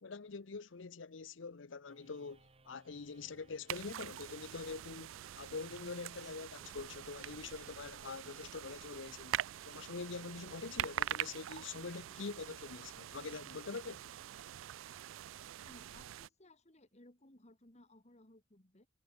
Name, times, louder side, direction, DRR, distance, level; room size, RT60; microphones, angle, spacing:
voice 1, 0.0-9.4 9.6-14.2, left 4 dB, 75° left, 0.7 m, -45 dB
sound 1, 1.9-8.7, right 2 dB, 30° right, 1.7 m, -69 dB
sound 2, 2.8-8.4, right 2 dB, 45° right, 2.0 m, -69 dB
sound 3, 3.7-16.3, right 11 dB, 85° right, 0.3 m, -44 dB
voice 2, 15.6-18.9, left 1 dB, 35° left, 2.9 m, -61 dB
head